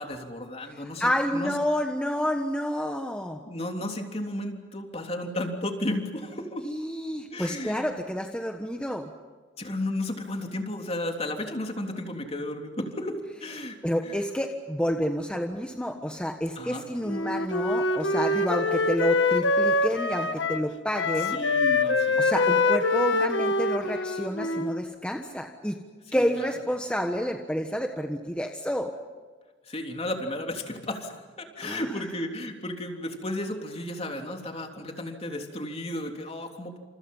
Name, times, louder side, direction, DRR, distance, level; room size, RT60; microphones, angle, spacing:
voice 1, 0.0-1.5 3.5-6.7 7.3-7.9 9.6-14.2 16.5-16.9 21.2-22.2 26.1-26.5 29.6-36.8, left 1 dB, 35° left, 3 dB, 3.3 m, -34 dB
voice 2, 1.0-3.4 6.6-9.1 13.8-21.4 22.2-25.8 26.1-28.9 31.6-32.1, equal, 5° left, 3 dB, 1.4 m, -29 dB
Wind instrument woodwind instrument, 17.1-20.7 20.9-24.9, left 3 dB, 85° left, 1.7 m, -25 dB
30.0 x 28.0 x 5.6 m, 1.4 s
head